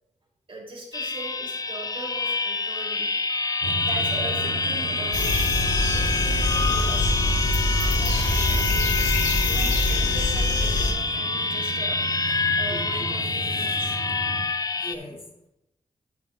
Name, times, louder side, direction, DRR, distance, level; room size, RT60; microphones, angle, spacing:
voice 1, 0.5-3.1 3.8-5.5 5.9-7.1 7.8-8.9 9.4-12.0 12.6-13.9, right 2 dB, 45° right, -2 dB, 3.4 m, -40 dB
sound 1, 0.9-14.9, left 4 dB, 30° left, 0.5 m, -27 dB
sound 2, 3.6-14.5, right 4 dB, 70° right, 1.0 m, -35 dB
sound 3, 5.1-10.9, left 1 dB, 75° left, 1.8 m, -24 dB
voice 2, 12.7-14.0 14.7-15.5, left 1 dB, 50° left, -1 dB, 2.8 m, -41 dB
9.9 x 8.5 x 2.5 m, 0.85 s
cardioid pair, 75°, 13 cm